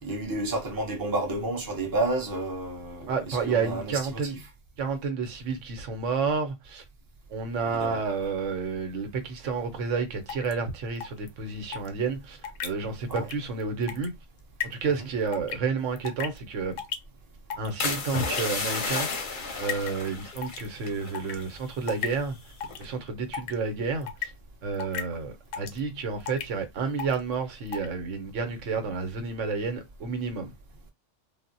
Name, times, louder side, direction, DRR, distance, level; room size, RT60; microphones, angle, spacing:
voice 1, 0.0-4.4 7.8-8.0 13.1-13.3, right 2 dB, 20° right, 0.7 m, -31 dB
voice 2, 3.1-4.4 4.8-6.8 7.3-14.1 14.6-16.8 17.6-19.3 19.6-22.4 22.8-24.3 24.6-30.5, right 5 dB, 80° right, 1.1 m, -30 dB
sound 1, 10.3-10.5 11.0-11.3 11.7-11.9 12.4-12.7 13.1-13.3 13.6-14.1 14.6-14.7 15.3-15.6 16.0-16.4 16.8-17.0 17.5-17.9 18.2-18.4 19.0-19.1 19.7-20.0 20.4-20.7 21.1-21.4 21.9-22.1 22.6-22.9 23.3-23.5 24.0-24.3 24.8-25.0 25.5-25.8 26.3-26.5 27.0-27.2 27.7-27.9, left 8 dB, 80° left, 1.0 m, -33 dB
sound 2, 17.8-21.5 21.8-22.2 22.6-22.9, left 4 dB, 50° left, 0.8 m, -32 dB
3.6 x 2.0 x 2.6 m
omnidirectional pair, 1.2 m